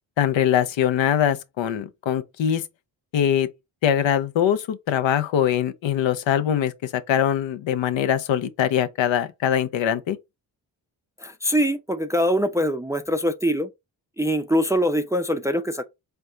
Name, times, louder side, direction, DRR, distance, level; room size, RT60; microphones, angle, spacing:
voice 1, 0.2-2.6 3.1-3.5 3.8-10.2, left 9 dB, 65° left, 0.7 m, -22 dB
voice 2, 11.2-13.7 14.2-15.8, equal, 5° right, 0.4 m, -23 dB
4.3 x 2.2 x 3.6 m
supercardioid pair, 45°, 48 cm